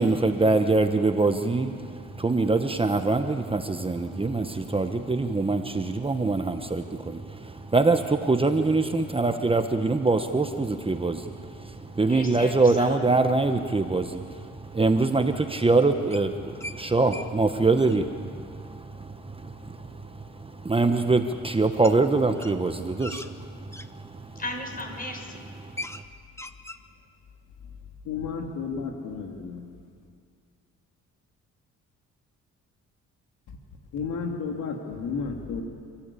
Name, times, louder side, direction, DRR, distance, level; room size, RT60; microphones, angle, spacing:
voice 1, 0.0-24.4 25.6-26.0, right 3 dB, 20° right, 1.2 m, -24 dB
voice 2, 12.0-13.0 24.4-25.4, left 2 dB, 30° left, 5.7 m, -36 dB
sound 1, 16.1-16.8 17.1-17.3 17.6-18.0 20.2-20.3 21.8-22.0 22.3-23.9 24.6-24.8 25.2-25.3 25.5-26.0 26.3-26.8, left 1 dB, 10° left, 1.0 m, -39 dB
voice 3, 28.0-29.6 33.9-35.6, left 5 dB, 85° left, 2.7 m, -32 dB
29.5 x 15.0 x 8.5 m
cardioid pair, 90°, 30 cm